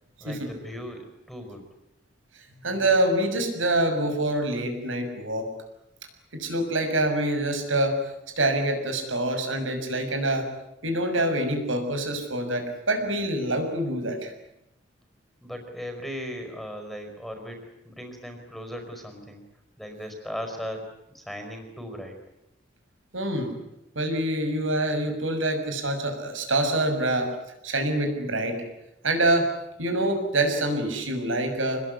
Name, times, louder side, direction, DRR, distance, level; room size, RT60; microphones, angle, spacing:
voice 1, 0.2-1.6 15.4-19.4 19.8-20.9 21.1-22.1, equal, ahead, 5 dB, 4.8 m, -37 dB
voice 2, 2.6-5.5 6.3-8.0 8.4-10.5 10.8-14.3 23.1-23.5 23.9-27.3 27.6-28.6 29.0-29.5 29.8-31.8, right 1 dB, 90° right, 5 dB, 6.6 m, -25 dB
26.5 x 21.0 x 9.8 m, 0.86 s
head